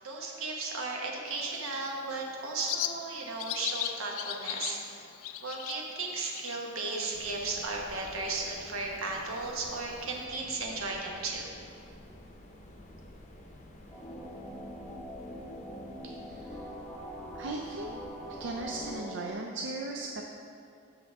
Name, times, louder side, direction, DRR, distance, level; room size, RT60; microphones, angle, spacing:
voice 1, 0.0-5.0 5.4-11.5, right 3 dB, 75° right, 0 dB, 1.1 m, -35 dB
Bird, 1.3-10.2, left 12 dB, 75° left, 0.3 m, -41 dB
sound 1, 7.1-18.9, left 1 dB, 35° left, 0.7 m, -51 dB
sound 2, 13.9-19.3, equal, 10° left, 1.0 m, -43 dB
voice 2, 16.0-16.6 17.3-18.0 18.4-20.2, right 2 dB, 60° right, 1 dB, 0.4 m, -38 dB
7.8 x 6.5 x 3.5 m, 2.5 s
head